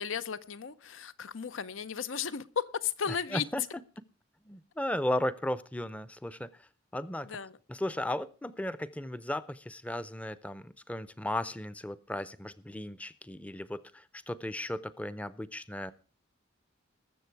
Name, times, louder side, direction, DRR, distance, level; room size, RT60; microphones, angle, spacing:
voice 1, 0.0-3.5 7.2-7.6, left 7 dB, 80° left, 16 dB, 0.7 m, -35 dB
voice 2, 3.3-3.6 4.5-6.5 6.9-7.3 7.7-15.9, left 1 dB, 5° left, 16 dB, 0.5 m, -35 dB
20.0 x 7.4 x 4.6 m, 0.35 s
head